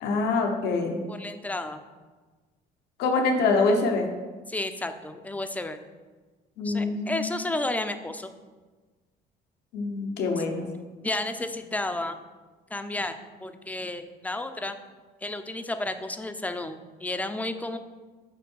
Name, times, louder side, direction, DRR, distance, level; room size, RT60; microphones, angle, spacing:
voice 1, 0.0-1.0 3.0-4.1 6.6-7.3 9.7-10.7, left 3 dB, 80° left, 3 dB, 0.9 m, -25 dB
voice 2, 1.1-1.8 4.5-5.8 6.6-8.3 11.0-12.2 12.7-13.1 13.4-14.8 15.2-17.8, left 2 dB, 10° left, 8 dB, 0.5 m, -32 dB
5.9 x 4.5 x 6.2 m, 1.3 s
cardioid pair, 110°, 17 cm